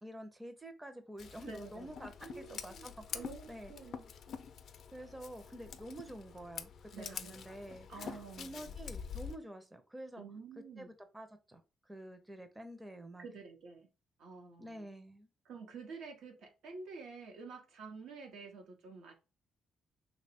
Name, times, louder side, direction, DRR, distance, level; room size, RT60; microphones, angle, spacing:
voice 1, 0.0-3.7 4.9-10.2 10.8-11.6 11.9-13.3 14.6-15.3, right 1 dB, 10° right, 0.5 m, -49 dB
Scissors, 1.2-9.4, left 7 dB, 60° left, 0.3 m, -47 dB
voice 2, 1.5-1.9 2.2-2.9 3.1-4.1 6.9-7.3 7.9-8.7 10.2-10.9 13.2-13.9 14.2-14.9 15.4-19.1, right 4 dB, 80° right, 0.8 m, -49 dB
2.9 x 2.1 x 4.1 m
cardioid pair, 90°, 0 cm